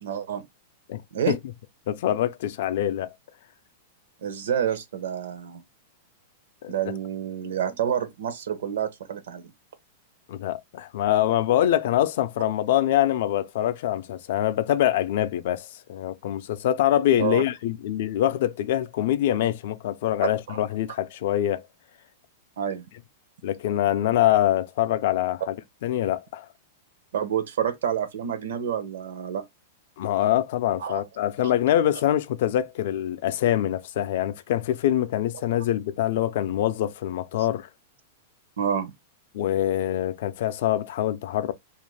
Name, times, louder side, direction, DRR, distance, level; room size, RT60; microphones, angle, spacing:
voice 1, 0.0-0.4 1.1-1.4 4.2-5.6 6.7-9.5 17.2-17.4 20.5-20.6 22.6-22.9 27.1-29.4 30.8-31.0 38.6-38.9, right 8 dB, 80° right, 0.7 m, -28 dB
voice 2, 1.9-3.1 6.6-6.7 10.3-21.6 23.4-25.5 25.8-26.5 30.0-37.7 39.3-41.5, left 12 dB, 60° left, 0.3 m, -24 dB
2.4 x 2.2 x 3.2 m
supercardioid pair, 155°, 0 cm